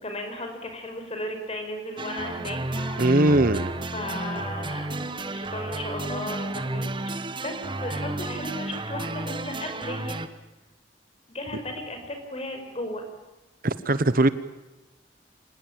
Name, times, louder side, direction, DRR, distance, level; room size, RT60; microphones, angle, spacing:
voice 1, 0.0-2.6 3.9-10.2 11.3-13.0, left 1 dB, 35° left, 5 dB, 5.5 m, -35 dB
sound 1, 2.0-10.3, right 2 dB, 25° right, 1.3 m, -32 dB
Gong, 2.7-5.7, equal, 10° left, 2.2 m, -44 dB
voice 2, 3.0-3.7 13.6-14.3, right 2 dB, 50° right, 14 dB, 1.1 m, -20 dB
26.0 x 19.5 x 8.9 m, 1.0 s
head